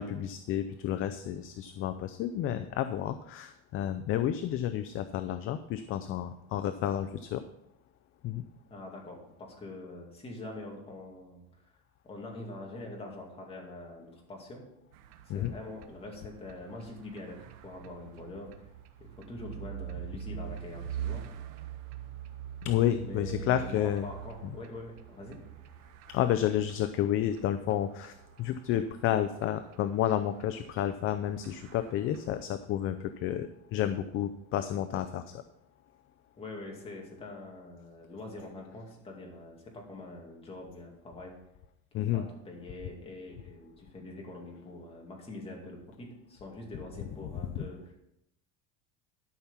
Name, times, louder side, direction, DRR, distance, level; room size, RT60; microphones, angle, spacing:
voice 1, 0.0-7.4 8.2-8.4 15.3-15.5 22.6-24.1 26.1-35.4 41.9-42.2, left 11 dB, 40° left, 11 dB, 0.5 m, -31 dB
voice 2, 8.7-11.8 12.0-14.6 15.3-18.7 19.0-21.3 23.0-25.4 36.4-41.3 42.0-47.9, left 2 dB, 15° left, -1 dB, 2.5 m, -44 dB
sound 1, 14.9-32.4, right 10 dB, 85° right, 1.1 m, -45 dB
12.5 x 6.1 x 5.7 m, 0.81 s
cardioid pair, 160°, 34 cm